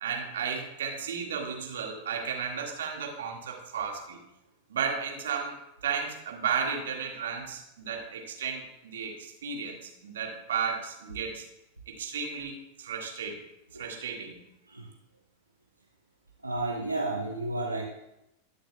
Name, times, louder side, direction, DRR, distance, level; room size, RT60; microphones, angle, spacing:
voice 1, 0.0-4.2 4.7-5.5 5.8-11.5 12.0-13.4 13.8-14.4, right 6 dB, 60° right, 1 dB, 1.7 m, -34 dB
voice 2, 16.4-17.8, right 2 dB, 85° right, -1 dB, 1.0 m, -32 dB
19.0 x 6.5 x 2.2 m, 0.86 s
figure-of-eight pair, 90°, 0 cm